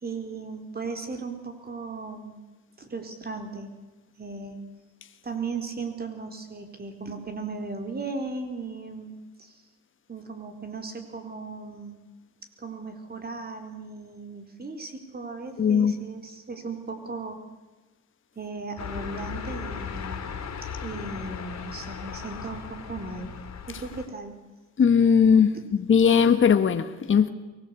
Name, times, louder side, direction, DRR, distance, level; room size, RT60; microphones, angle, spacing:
voice 1, 0.0-2.4 2.8-3.7 4.2-4.6 5.2-9.6 10.1-12.0 12.6-17.4 18.4-20.3 20.6-23.3 23.7-24.3, right 4 dB, 30° right, 4.3 m, -36 dB
voice 2, 15.6-16.0 24.8-25.6 25.9-27.3, left 7 dB, 40° left, 1.5 m, -19 dB
sound 1, 18.8-24.1, left 6 dB, 60° left, 3.5 m, -37 dB
23.5 x 20.0 x 8.4 m
cardioid pair, 90°, 30 cm